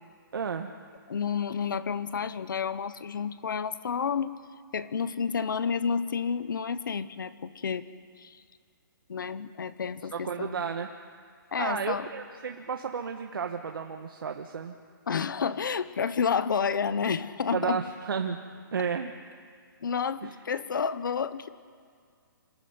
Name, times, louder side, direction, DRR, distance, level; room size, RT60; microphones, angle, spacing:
voice 1, 0.3-0.7 10.1-10.9 11.6-14.8 17.5-18.4 18.7-19.1 20.2-20.3, right 6 dB, 80° right, 4 dB, 1.5 m, -32 dB
voice 2, 1.1-4.4 4.7-7.9 8.2-8.4 9.1-10.6 11.5-12.1 15.1-17.8 19.8-21.5, left 6 dB, 65° left, 15 dB, 1.1 m, -30 dB
27.0 x 14.5 x 9.7 m, 2.2 s
hypercardioid pair, 175°, 12 cm